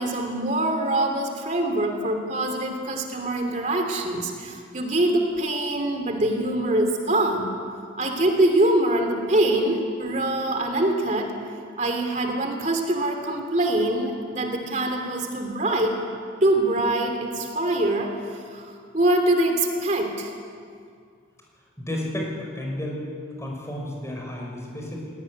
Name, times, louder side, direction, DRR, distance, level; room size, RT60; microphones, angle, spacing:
voice 1, 0.0-7.5 8.0-11.3 11.8-16.0 16.4-20.3, right 1 dB, 40° right, 4 dB, 3.0 m, -24 dB
voice 2, 21.8-23.1 23.4-25.1, left 1 dB, 15° left, -1 dB, 5.4 m, -32 dB
20.5 x 18.5 x 9.7 m, 2.2 s
head